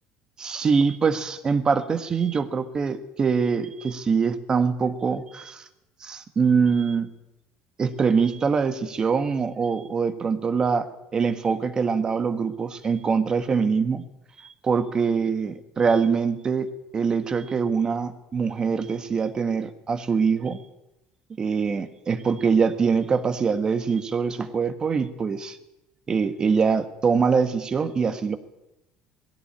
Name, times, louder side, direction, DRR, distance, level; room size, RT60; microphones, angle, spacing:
voice 1, 0.4-5.6 6.0-7.1 7.8-10.9 11.1-14.0 14.4-20.6 21.4-25.6 26.1-28.4, right 5 dB, 25° right, 10 dB, 1.5 m, -24 dB
19.5 x 16.5 x 8.9 m, 0.94 s
cardioid pair, 140°, 3 cm